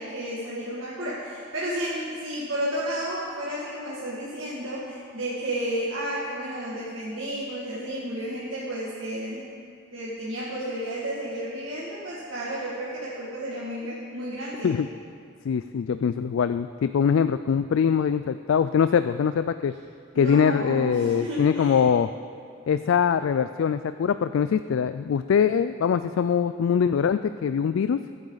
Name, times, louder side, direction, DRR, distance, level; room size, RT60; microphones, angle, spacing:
voice 1, 0.0-9.4 9.9-14.8 20.1-21.8, equal, 75° right, -8 dB, 2.2 m, -32 dB
voice 2, 15.4-19.7 20.2-22.1 22.7-28.0, left 7 dB, 75° left, 11 dB, 0.3 m, -23 dB
21.5 x 9.1 x 4.0 m, 2.2 s
head